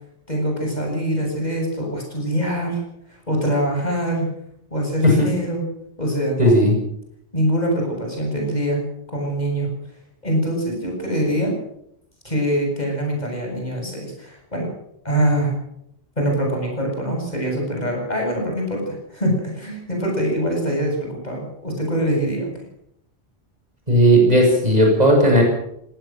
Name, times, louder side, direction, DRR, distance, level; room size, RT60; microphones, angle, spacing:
voice 1, 0.3-2.8 3.3-4.3 4.7-5.7 6.0-6.6 7.3-8.8 9.1-9.7 10.2-11.5 12.2-14.7 15.0-15.5 16.2-22.5, equal, 35° left, 0 dB, 8.2 m, -23 dB
voice 2, 6.4-6.8 23.9-25.4, equal, 35° right, 1 dB, 7.9 m, -14 dB
20.5 x 18.0 x 7.7 m, 0.76 s
omnidirectional pair, 1.2 m